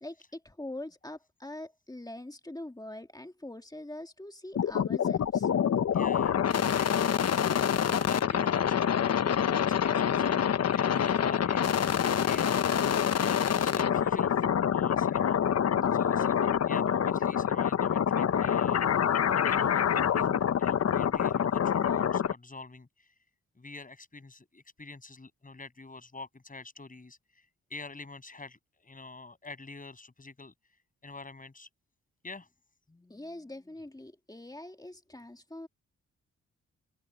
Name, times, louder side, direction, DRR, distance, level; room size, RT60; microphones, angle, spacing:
voice 1, 0.0-5.5 15.8-16.6 32.9-35.7, left 1 dB, 15° left, 2.0 m, -44 dB
sound 1, 4.6-22.3, left 8 dB, 55° left, 0.9 m, -26 dB
voice 2, 5.9-12.8 13.1-14.5 14.7-15.4 15.9-18.9 19.3-23.1 23.6-27.2 27.7-30.5 31.0-31.7 32.2-32.5, left 3 dB, 30° left, 7.8 m, -46 dB
cardioid pair, 70°, 29 cm